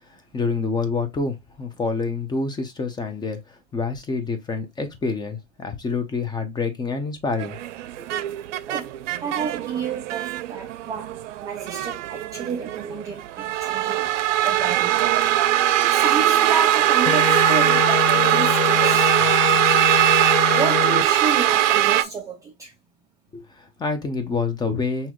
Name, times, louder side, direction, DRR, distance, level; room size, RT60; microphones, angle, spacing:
voice 1, 0.3-3.4 3.7-7.6 23.3-25.1, left 4 dB, 10° left, 0.7 m, -27 dB
sound 1, 7.4-22.0, right 12 dB, 65° right, 0.7 m, -21 dB
voice 2, 8.7-14.1 14.4-15.2 15.8-19.1 19.5-20.1 20.5-22.7, right 6 dB, 10° right, 0.3 m, -31 dB
sound 2, 17.1-21.0, left 8 dB, 75° left, 1.0 m, -25 dB
6.0 x 2.9 x 2.3 m
supercardioid pair, 140°, 39 cm